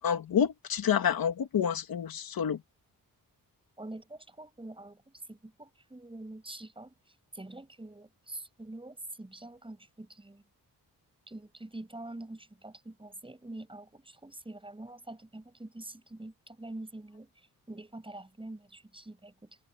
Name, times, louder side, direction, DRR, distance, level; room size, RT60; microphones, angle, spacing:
voice 1, 0.0-2.6, left 8 dB, 75° left, 2.4 m, -28 dB
voice 2, 3.8-10.4 11.3-19.6, right 2 dB, 15° right, 7.8 m, -45 dB
wide cardioid pair, 110°, 35 cm